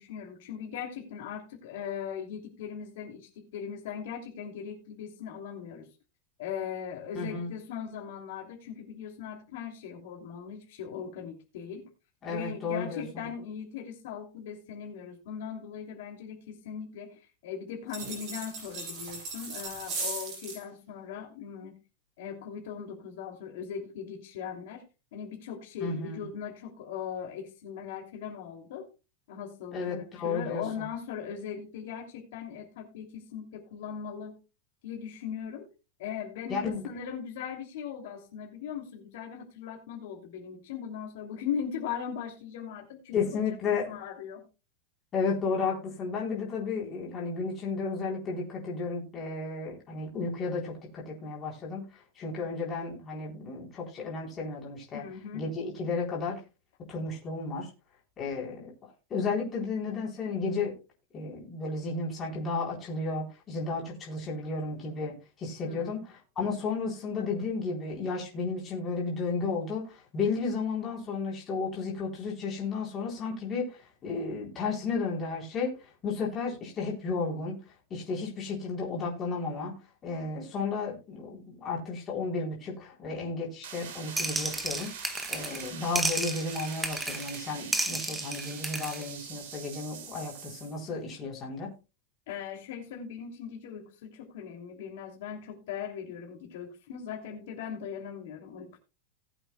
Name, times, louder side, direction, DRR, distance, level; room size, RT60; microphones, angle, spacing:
voice 1, 0.0-5.9 6.4-11.9 12.3-21.8 22.2-24.8 25.1-28.9 29.3-34.3 34.8-35.7 36.0-43.4 43.7-44.4 54.9-55.5 65.6-66.0 92.3-98.8, left 8 dB, 60° left, 1 dB, 2.9 m, -39 dB
voice 2, 7.1-7.5 12.2-13.3 25.8-26.2 29.7-30.9 36.5-36.9 43.1-43.9 45.1-55.0 55.3-56.4 56.9-57.7 58.2-58.7 59.1-60.7 61.1-77.6 77.9-79.7 80.0-84.9 85.3-91.7, left 4 dB, 20° left, -3 dB, 4.0 m, -33 dB
sound 1, 17.9-20.6, right 3 dB, 35° right, 7.3 m, -37 dB
sound 2, 83.6-90.8, right 7 dB, 75° right, 3.1 m, -43 dB
sound 3, 84.2-85.7 86.0-87.4 87.7-89.0, right 2 dB, 5° right, 0.8 m, -32 dB
19.0 x 7.9 x 2.3 m, 0.30 s
supercardioid pair, 175°, 0 cm